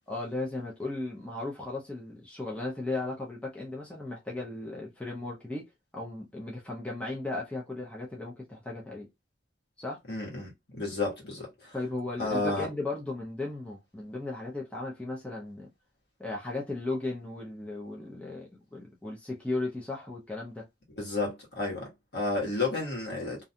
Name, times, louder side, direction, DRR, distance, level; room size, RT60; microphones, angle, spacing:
voice 1, 0.1-9.1 9.8-10.0 11.7-15.7 16.2-20.7, left 2 dB, 5° left, 0.5 m, -36 dB
voice 2, 10.1-11.7 12.2-12.7 21.0-23.4, left 3 dB, 55° left, 1.3 m, -32 dB
2.5 x 2.3 x 2.6 m
head